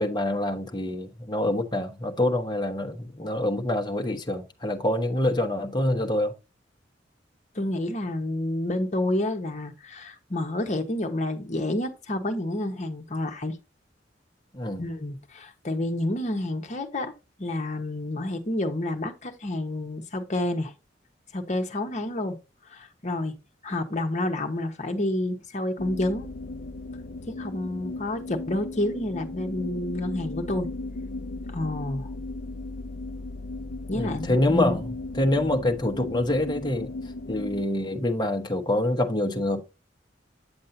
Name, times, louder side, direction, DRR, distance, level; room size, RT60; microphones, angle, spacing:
voice 1, 0.0-6.3 14.5-14.8 33.9-34.9 35.2-36.9 37.3-39.6, left 1 dB, 25° left, 1.1 m, -26 dB
voice 2, 7.5-13.6 14.8-17.1 17.4-20.7 21.3-22.3 22.7-23.3 23.6-26.3 27.2-30.7 31.5-32.1 33.9-34.8, left 1 dB, 40° left, 1.2 m, -29 dB
sound 1, 25.8-37.7, left 2 dB, 65° left, 0.5 m, -36 dB
8.9 x 7.5 x 2.8 m
head